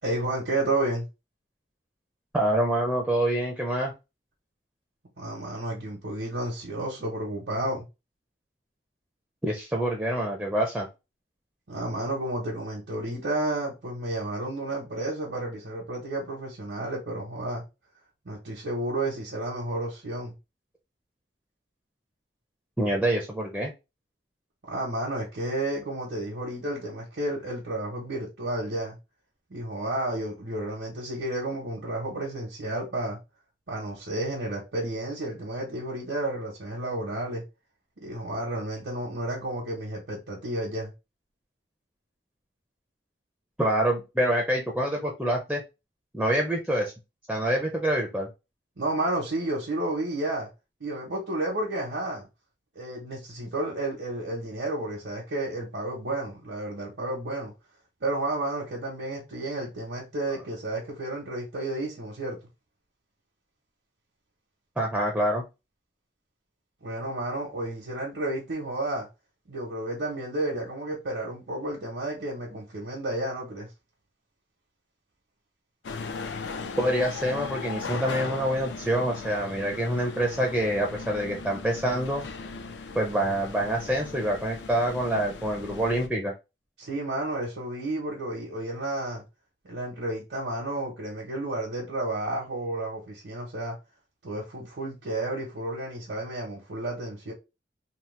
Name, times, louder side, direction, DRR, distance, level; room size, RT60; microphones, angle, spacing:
voice 1, 0.0-1.1 5.2-7.8 11.7-17.6 18.2-20.3 24.7-29.0 29.5-33.2 33.7-37.4 38.0-40.9 48.8-50.5 50.8-52.3 52.7-57.5 58.0-62.4 66.8-69.1 69.5-73.7 86.8-89.2 89.6-93.8 94.2-97.3, right 1 dB, 85° right, 0.8 m, -31 dB
voice 2, 2.3-3.9 9.4-10.9 22.8-23.7 43.6-45.6 46.1-46.9 47.3-48.3 64.8-65.4 76.8-82.2 82.9-86.3, right 1 dB, 5° right, 0.4 m, -26 dB
sound 1, 75.8-86.1, left 4 dB, 85° left, 0.4 m, -38 dB
2.9 x 2.0 x 3.1 m
head